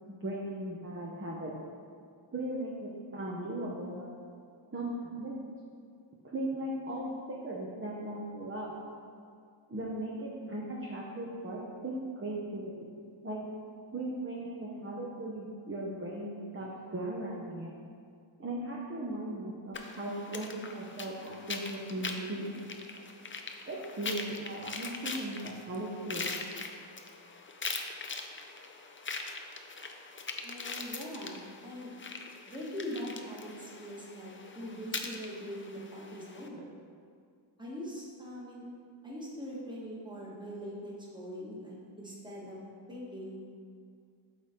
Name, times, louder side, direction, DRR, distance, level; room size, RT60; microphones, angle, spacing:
voice 1, 0.1-1.5 2.3-4.1 4.7-5.3 6.2-8.7 9.7-13.0 13.2-13.4 13.9-17.7 18.4-22.5 23.7-26.3, right 1 dB, 25° right, -4 dB, 0.8 m, -38 dB
sound 1, 19.7-36.5, left 4 dB, 25° left, 0.4 m, -42 dB
voice 2, 30.4-31.9 32.5-36.7 37.6-38.7 39.0-42.6 42.9-43.5, equal, 10° right, -6 dB, 1.5 m, -42 dB
8.2 x 4.1 x 3.7 m, 2.3 s
wide cardioid pair, 90°, 49 cm